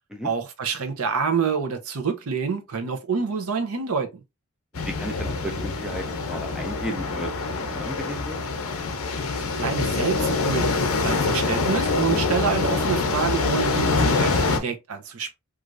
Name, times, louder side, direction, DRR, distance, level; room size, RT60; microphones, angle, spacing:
voice 1, 0.2-4.2 9.4-10.7 11.0-15.3, right 6 dB, 70° right, 0.6 m, -27 dB
sound 1, 4.7-14.6, left 3 dB, 65° left, 0.6 m, -25 dB
voice 2, 4.7-8.4, equal, 5° right, 0.4 m, -34 dB
3.1 x 2.4 x 2.5 m
head